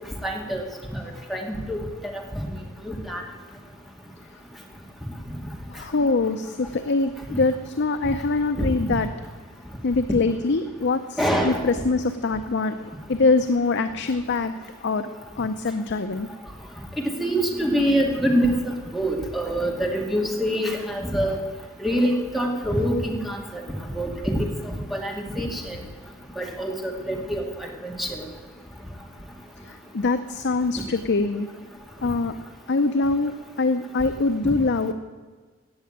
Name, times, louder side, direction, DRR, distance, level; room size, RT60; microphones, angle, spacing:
voice 1, 0.2-0.6 0.9-1.0 1.3-1.4 1.7-1.8 2.1-2.4 2.9-3.2 7.3-7.4 8.6-8.9 11.2-11.6 17.0-18.6 18.9-21.4 21.8-23.6 23.9-25.8 26.4-28.2 34.4-34.5, equal, ahead, 0 dB, 2.0 m, -25 dB
voice 2, 5.7-9.1 9.8-14.5 14.8-15.1 15.3-16.3 29.6-31.5 32.0-32.4 32.7-34.9, left 3 dB, 55° left, 8 dB, 0.6 m, -24 dB
17.0 x 6.9 x 8.8 m, 1.4 s
head